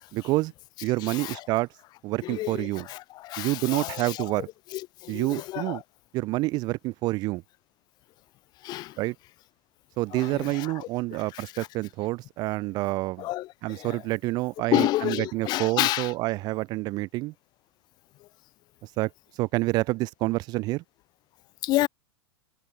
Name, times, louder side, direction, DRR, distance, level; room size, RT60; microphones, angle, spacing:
voice 1, 0.1-0.5 0.8-1.7 2.0-2.9 3.4-4.5 5.1-5.8 6.1-7.4 9.0-9.1 10.0-13.3 13.6-17.3 18.8-20.8, right 20 dB, 30° right, 0.4 m, -28 dB
voice 2, 1.0-1.5 2.2-4.3 4.7-5.8 8.6-9.0 10.1-11.7 13.2-14.0 14.7-16.1 18.2-18.3 21.6-21.9, left 17 dB, 30° left, 0.8 m, -30 dB
supercardioid pair, 150°, 14 cm